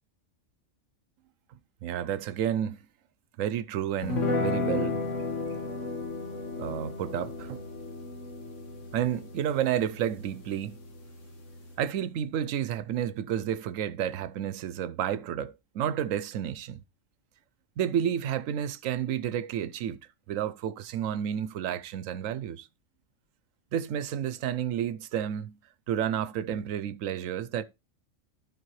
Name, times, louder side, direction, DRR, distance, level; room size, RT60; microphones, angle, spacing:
voice 1, 1.8-2.8 3.4-5.0 6.6-7.7 8.9-10.8 11.8-16.8 17.8-20.0 20.3-22.7 23.7-25.6 25.9-27.6, right 9 dB, 85° right, 1.0 m, -31 dB
sound 1, 4.0-11.8, left 3 dB, 75° left, 1.6 m, -34 dB
14.0 x 4.8 x 3.1 m
omnidirectional pair, 1.3 m